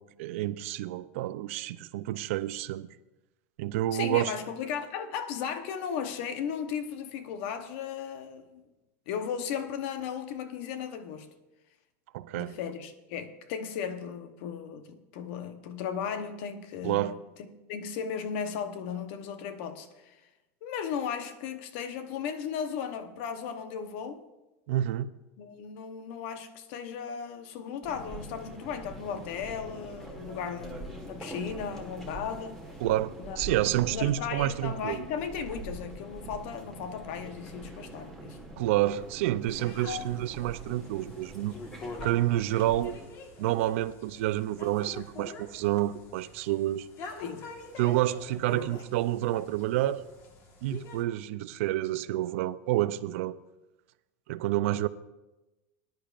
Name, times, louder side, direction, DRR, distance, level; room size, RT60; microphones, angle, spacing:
voice 1, 0.2-2.9 3.6-4.3 12.1-12.6 16.8-17.1 24.7-25.1 32.8-33.1 33.4-35.1 38.6-41.6 42.0-42.9 43.4-46.9 47.8-50.0 50.6-53.4 54.3-54.9, right 14 dB, 65° right, 0.5 m, -29 dB
voice 2, 3.9-8.6 9.1-11.3 12.3-17.2 17.7-20.2 20.6-24.2 25.4-32.6 33.2-33.4 33.6-38.4 39.8-40.0 47.2-47.5 48.5-48.8, left 7 dB, 55° left, 1.0 m, -36 dB
sound 1, 27.8-43.1, right 1 dB, 5° left, 1.6 m, -44 dB
sound 2, 39.5-51.0, left 3 dB, 35° left, 1.6 m, -46 dB
20.0 x 10.5 x 2.5 m
supercardioid pair, 165°, 8 cm